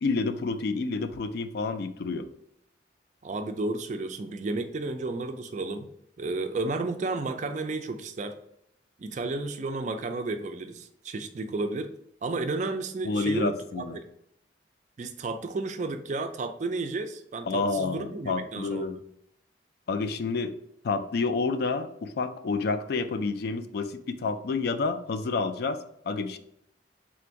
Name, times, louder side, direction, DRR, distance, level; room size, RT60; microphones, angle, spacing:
voice 1, 0.0-2.3 13.0-14.0 17.5-19.0 19.9-20.5 20.8-26.4, left 3 dB, 55° left, 10 dB, 0.3 m, -29 dB
voice 2, 3.2-5.9 6.2-8.4 9.0-11.9 12.2-14.0 15.0-19.0, right 3 dB, 40° right, 8 dB, 0.3 m, -32 dB
3.7 x 2.5 x 4.5 m, 0.75 s
head